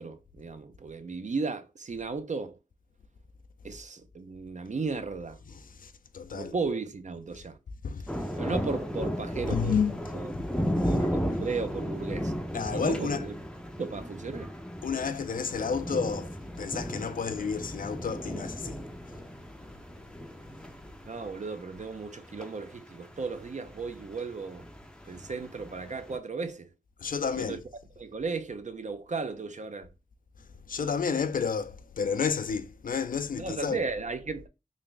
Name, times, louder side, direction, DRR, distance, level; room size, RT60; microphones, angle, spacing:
voice 1, 0.0-2.6 3.6-5.4 6.3-7.6 8.2-9.8 10.1-10.3 10.8-12.3 12.7-13.4 13.8-14.5 21.1-24.7 25.1-26.7 27.4-27.6 28.0-29.9 31.1-31.3 33.4-34.5, right 4 dB, 55° right, 0.5 m, -35 dB
voice 2, 5.5-6.5 7.8-8.1 9.5-10.0 10.3-10.9 12.5-13.3 14.8-18.8 27.0-27.6 30.7-33.8, left 6 dB, 65° left, 0.4 m, -31 dB
sound 1, 8.1-26.2, equal, 5° left, 0.5 m, -35 dB
3.4 x 2.4 x 3.8 m
wide cardioid pair, 70°, 15 cm